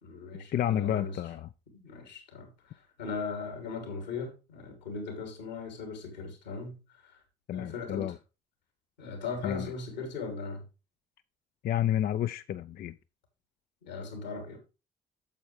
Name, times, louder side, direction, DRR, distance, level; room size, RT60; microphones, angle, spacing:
voice 1, 0.0-1.2 1.8-7.2 7.5-8.1 9.0-10.6 13.8-14.6, left 4 dB, 85° left, 2.8 m, -39 dB
voice 2, 0.5-1.5 7.5-8.2 9.4-9.7 11.6-12.9, left 11 dB, 45° left, 0.5 m, -30 dB
9.1 x 7.1 x 3.3 m
hypercardioid pair, 50°, 21 cm